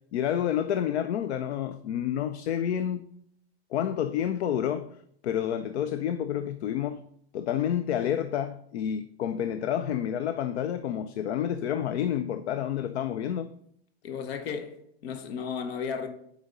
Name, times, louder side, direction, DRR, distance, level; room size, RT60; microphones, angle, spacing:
voice 1, 0.1-3.0 3.7-5.0 5.2-7.0 7.3-13.5, left 9 dB, 85° left, 0.5 m, -29 dB
voice 2, 14.0-14.8 15.0-16.1, left 6 dB, 70° left, 0.9 m, -34 dB
8.0 x 5.1 x 3.8 m
supercardioid pair, 140°, 32 cm